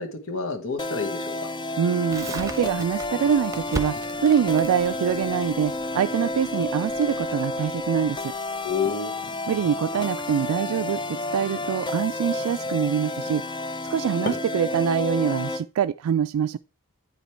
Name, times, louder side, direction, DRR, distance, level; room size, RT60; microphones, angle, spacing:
voice 1, 0.0-1.5 8.6-9.1, left 5 dB, 70° left, 1.2 m, -29 dB
sound 1, 0.8-15.6, left 2 dB, 20° left, 0.4 m, -31 dB
voice 2, 1.8-8.3 9.5-16.6, right 8 dB, 85° right, 0.3 m, -24 dB
Crackle, 2.1-8.9, right 2 dB, 15° right, 0.8 m, -38 dB
sound 2, 2.3-2.5 2.8-8.0 8.6-13.5 14.2-14.7 15.2-15.5, left 3 dB, 50° left, 1.0 m, -44 dB
8.9 x 5.1 x 4.4 m
head